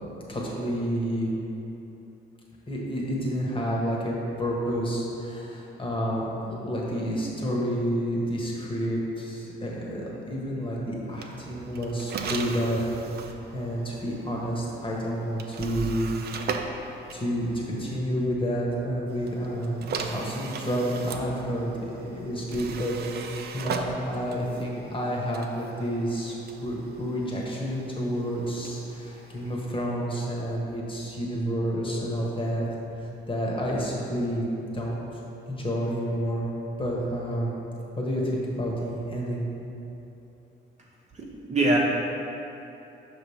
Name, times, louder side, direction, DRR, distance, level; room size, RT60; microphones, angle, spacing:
voice 1, 0.3-1.3 2.7-16.1 16.8-21.7 22.0-32.7 33.0-35.1 35.5-36.5 36.8-37.5 38.0-39.5, equal, 25° left, -4 dB, 1.4 m, -29 dB
sound 1, 11.1-18.0 19.1-29.6, right 5 dB, 55° right, 0.5 m, -38 dB
voice 2, 41.1-41.8, right 2 dB, 35° right, -4 dB, 1.0 m, -24 dB
5.6 x 3.6 x 5.7 m, 3.0 s
cardioid pair, 90°, 20 cm